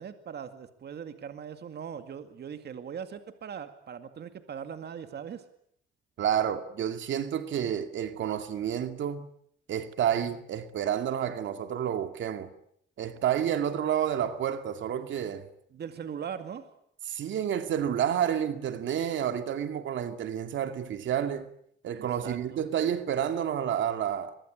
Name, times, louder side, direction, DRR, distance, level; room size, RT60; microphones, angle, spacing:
voice 1, 0.0-5.4 15.7-16.7 22.0-22.6, right 7 dB, 55° right, 2.2 m, -40 dB
voice 2, 6.2-9.3 9.7-12.5 13.0-15.5 17.1-21.5 21.8-24.3, right 9 dB, 70° right, 2.3 m, -30 dB
24.0 x 22.5 x 8.8 m
cardioid pair, 90°, 20 cm